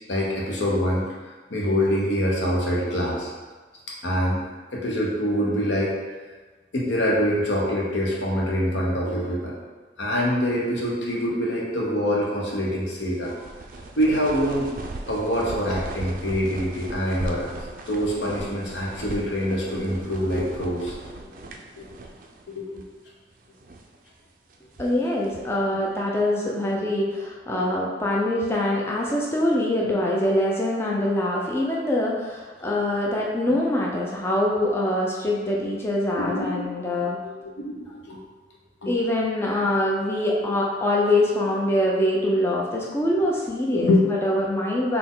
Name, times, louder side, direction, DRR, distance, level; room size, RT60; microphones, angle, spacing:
voice 1, 0.1-3.3 4.0-4.4 4.7-5.9 6.7-9.6 10.0-13.3 14.0-14.7 15.1-17.5 17.9-21.2 21.7-21.9 22.5-22.8 25.7-25.8 27.5-27.7 36.2-36.6 37.2-38.2 38.8-38.9 43.7-44.2, equal, 85° left, -3 dB, 0.9 m, -25 dB
sound 1, 13.0-22.5 22.7-22.9 23.5-24.0 24.5-25.6, right 2 dB, 50° right, 0.4 m, -38 dB
voice 2, 24.8-37.2 38.9-45.0, left 1 dB, 15° left, -3 dB, 0.4 m, -24 dB
4.1 x 2.8 x 3.8 m, 1.4 s
head